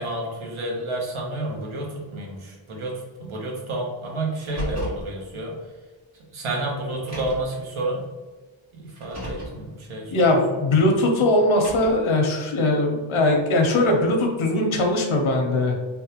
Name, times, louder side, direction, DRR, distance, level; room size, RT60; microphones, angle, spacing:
voice 1, 0.0-2.9 3.2-5.5 6.3-8.0 8.7-10.1 11.2-11.3, right 2 dB, 90° right, -1 dB, 0.9 m, -30 dB
Car, 4.3-5.1 6.1-6.2 6.9-7.6 8.9-9.6 11.4-12.1, equal, 35° right, 1.0 m, -34 dB
voice 2, 10.1-15.7, left 2 dB, 80° left, 2 dB, 0.8 m, -20 dB
3.5 x 2.2 x 2.8 m, 1.3 s
wide cardioid pair, 160°, 48 cm